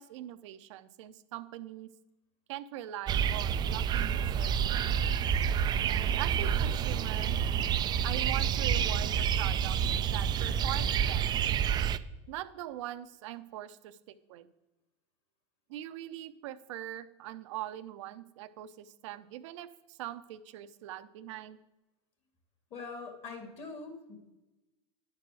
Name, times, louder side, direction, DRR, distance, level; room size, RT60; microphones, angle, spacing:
voice 1, 0.0-1.9 2.5-5.0 5.8-7.4 8.0-9.8 10.1-11.3 12.3-14.5 15.7-21.6, right 13 dB, 75° right, 11 dB, 0.7 m, -42 dB
sound 1, 3.1-12.0, right 8 dB, 25° right, 0.4 m, -28 dB
voice 2, 22.7-24.2, left 4 dB, 40° left, 3 dB, 2.3 m, -43 dB
10.5 x 4.8 x 6.1 m, 1.0 s
supercardioid pair, 120°, 16 cm